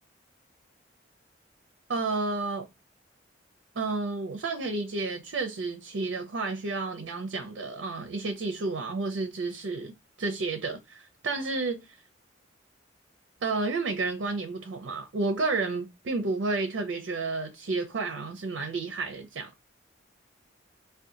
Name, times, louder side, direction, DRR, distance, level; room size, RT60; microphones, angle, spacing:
voice 1, 1.9-2.7 3.8-9.9 10.2-11.9 13.4-19.5, right 3 dB, 80° right, 0.5 m, -31 dB
2.7 x 2.2 x 3.6 m
head